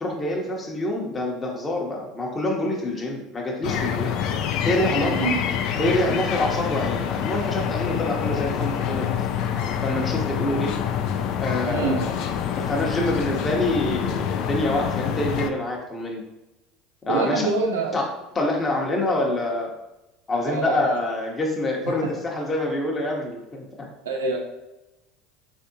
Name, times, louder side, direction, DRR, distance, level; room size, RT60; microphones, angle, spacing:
voice 1, 0.0-4.1 4.6-5.1 5.8-9.2 9.8-10.7 11.4-12.0 12.4-16.2 17.1-17.4 17.9-18.0 18.3-19.7 20.3-23.9, left 1 dB, 25° left, -1 dB, 0.9 m, -26 dB
sound 1, 3.6-15.5, left 8 dB, 60° left, 0.3 m, -26 dB
voice 2, 5.0-5.4 11.6-12.0 17.1-18.0 20.4-21.0 24.0-24.4, right 4 dB, 85° right, 1 dB, 0.7 m, -25 dB
3.4 x 3.4 x 2.7 m, 0.96 s
hypercardioid pair, 75°, 0 cm